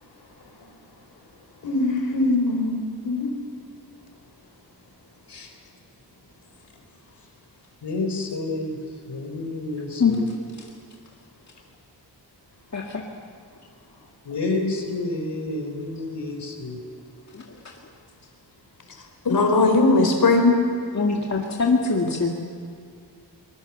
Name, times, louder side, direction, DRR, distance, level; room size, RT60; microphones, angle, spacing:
voice 1, 0.0-1.7 5.3-5.5 7.8-8.8 9.1-10.3 14.2-16.8, left 2 dB, 80° left, 3 dB, 3.6 m, -30 dB
voice 2, 1.6-3.4 19.2-20.6, left 2 dB, 60° left, 4 dB, 4.4 m, -20 dB
voice 3, 20.9-22.3, left 4 dB, 40° left, -1 dB, 2.1 m, -22 dB
23.5 x 21.0 x 7.0 m, 2.2 s
wide cardioid pair, 115°, 41 cm